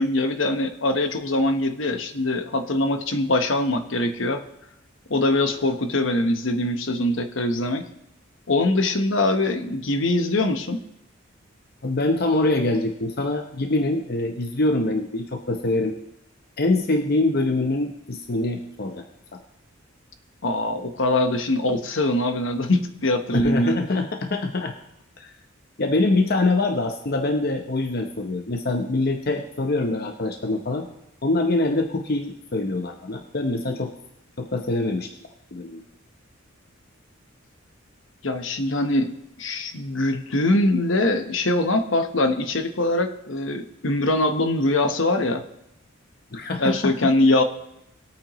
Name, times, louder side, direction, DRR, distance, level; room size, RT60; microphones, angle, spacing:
voice 1, 0.0-4.5 5.1-7.8 8.5-10.8 20.4-23.8 38.2-45.4 46.6-47.4, left 2 dB, 65° left, 8 dB, 1.0 m, -23 dB
voice 2, 11.8-16.0 16.6-19.0 19.3-19.4 23.3-24.7 25.2-25.3 25.8-30.9 31.2-33.9 34.4-35.1 35.5-35.8 46.3-46.9, left 2 dB, 50° left, 4 dB, 0.8 m, -24 dB
20.5 x 8.8 x 3.1 m, 0.81 s
head